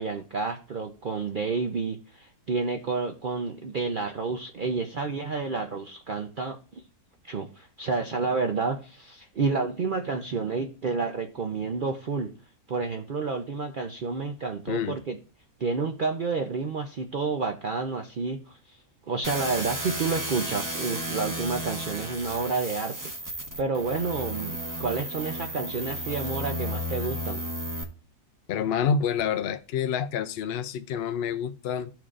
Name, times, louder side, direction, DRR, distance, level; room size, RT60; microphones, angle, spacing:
voice 1, 0.0-6.8 7.2-12.3 12.7-15.2 15.6-18.8 19.1-27.4, right 4 dB, 65° right, 0.5 m, -30 dB
voice 2, 14.7-15.0 28.5-31.9, left 7 dB, 70° left, 0.5 m, -28 dB
sound 1, 19.2-27.8, equal, 15° right, 0.8 m, -33 dB
13.5 x 4.5 x 2.5 m
omnidirectional pair, 1.7 m